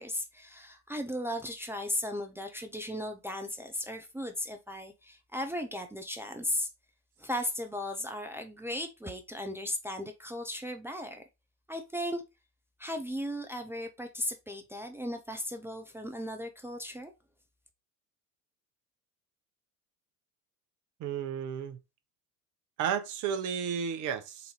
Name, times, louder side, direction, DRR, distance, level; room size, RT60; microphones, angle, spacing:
voice 1, 0.0-6.7 7.2-11.2 11.7-12.2 12.8-17.1, left 1 dB, 5° right, 0.3 m, -36 dB
voice 2, 21.0-21.8 22.8-24.5, right 8 dB, 40° right, 0.8 m, -33 dB
4.0 x 2.6 x 4.2 m
hypercardioid pair, 70°, 47 cm